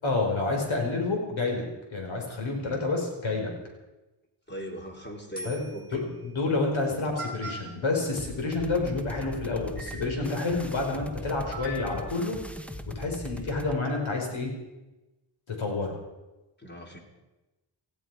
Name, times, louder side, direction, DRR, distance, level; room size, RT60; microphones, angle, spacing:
voice 1, 0.0-1.6 1.9-3.5 5.4-5.6 5.9-12.4 12.9-14.5 15.5-16.0, left 3 dB, 75° left, 1 dB, 4.7 m, -29 dB
voice 2, 4.5-6.0 16.6-17.0, equal, 20° left, 1 dB, 3.5 m, -40 dB
sound 1, 4.5-4.8 5.4-5.9 6.8-6.9 7.2-7.7 9.2-9.3 9.8-10.2 11.5-12.2, right 1 dB, 20° right, 6.4 m, -40 dB
sound 2, 8.2-13.8, equal, 5° left, 0.9 m, -40 dB
18.5 x 15.0 x 4.8 m, 1.1 s
wide cardioid pair, 85°, 47 cm